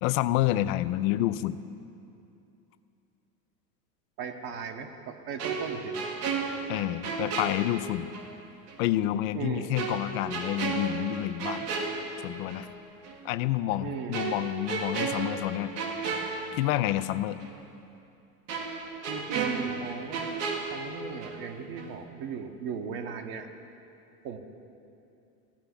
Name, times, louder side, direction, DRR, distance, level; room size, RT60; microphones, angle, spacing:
voice 1, 0.0-1.6 6.7-8.1 8.8-11.7 12.2-12.7 13.2-15.7 16.5-17.4, left 14 dB, 60° left, 13 dB, 0.7 m, -28 dB
voice 2, 4.2-6.0 9.3-9.7 13.8-14.2 19.1-20.3 20.7-23.5 24.2-24.4, right 6 dB, 50° right, 4 dB, 1.3 m, -37 dB
sound 1, 5.4-8.3 8.7-8.8 9.8-12.7 13.0-13.2 14.1-17.1 17.4-17.5 18.5-21.5 21.8-22.0, right 4 dB, 75° right, 1.9 m, -34 dB
15.0 x 5.7 x 9.8 m, 2.7 s
hypercardioid pair, 95°, 48 cm